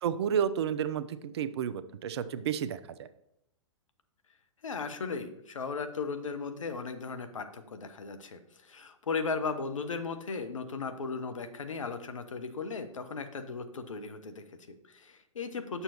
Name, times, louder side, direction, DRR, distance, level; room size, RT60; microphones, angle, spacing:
voice 1, 0.0-3.1, right 8 dB, 55° right, 13 dB, 0.5 m, -31 dB
voice 2, 4.6-15.8, left 4 dB, 75° left, 9 dB, 0.9 m, -36 dB
8.8 x 6.8 x 2.9 m, 0.79 s
figure-of-eight pair, 115°, 17 cm